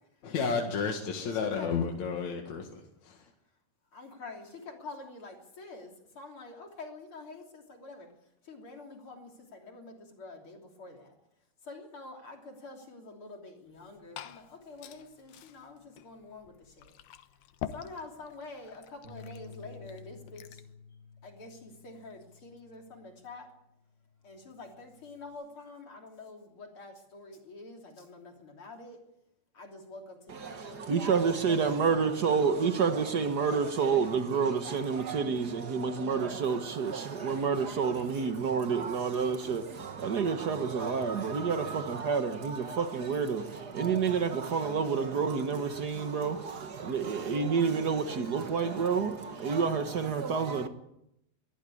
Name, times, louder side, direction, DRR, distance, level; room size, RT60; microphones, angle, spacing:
voice 1, 0.2-2.7 3.0-3.3, left 5 dB, 60° left, 3.1 m, -31 dB
voice 2, 1.2-1.8 3.9-8.1 8.4-11.2 11.6-17.0 17.7-20.6 21.2-23.5 24.2-29.0 29.5-31.9, left 3 dB, 40° left, 3.8 m, -47 dB
Glass / Fill (with liquid), 13.7-20.7, left 11 dB, 85° left, 2.8 m, -47 dB
Bass guitar, 19.0-23.5 23.9-25.3, left 5 dB, 35° right, 3.9 m, -52 dB
voice 3, 30.3-50.7, right 5 dB, 65° right, 1.0 m, -29 dB
23.0 x 15.0 x 8.6 m
omnidirectional pair, 3.8 m